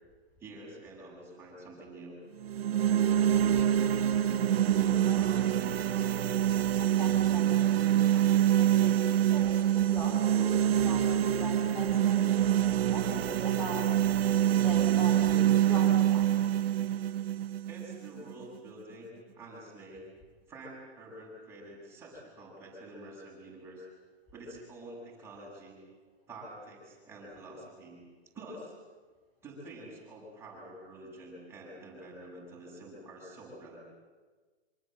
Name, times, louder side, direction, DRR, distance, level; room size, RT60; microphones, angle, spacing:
voice 1, 0.4-2.2 17.7-20.1 20.5-23.9 24.3-25.8 26.3-28.0 28.3-28.7 29.4-33.8, right 1 dB, 5° right, -4 dB, 7.3 m, -47 dB
sound 1, 2.4-18.4, right 11 dB, 60° right, 1.1 m, -26 dB
voice 2, 4.6-6.3 6.5-12.3 12.7-13.9 14.6-16.3, equal, 10° left, 0 dB, 2.7 m, -42 dB
26.0 x 25.5 x 7.9 m, 1.4 s
hypercardioid pair, 165°, 33 cm